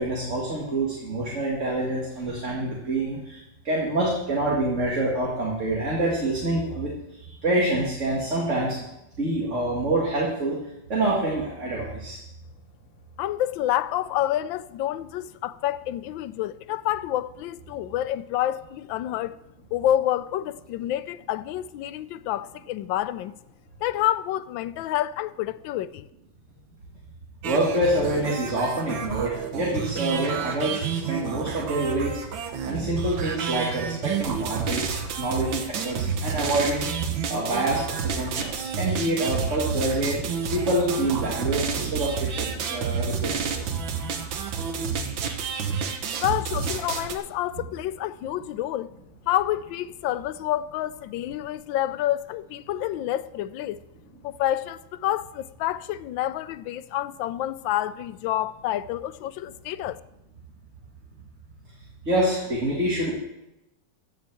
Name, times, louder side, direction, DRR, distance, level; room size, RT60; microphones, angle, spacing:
voice 1, 0.0-3.4 3.6-6.9 7.4-8.8 9.2-10.6 10.9-12.2 27.4-32.2 32.6-34.9 35.2-36.9 37.3-40.2 40.5-43.6 62.1-63.2, right 1 dB, 40° right, 2.3 m, -26 dB
voice 2, 13.2-19.3 19.7-23.4 23.8-26.0 46.2-48.9 49.3-53.8 54.2-60.0, left 12 dB, 85° left, 1.3 m, -28 dB
sound 1, 27.4-47.2, right 6 dB, 90° right, 1.9 m, -30 dB
15.5 x 5.9 x 7.6 m
omnidirectional pair, 2.0 m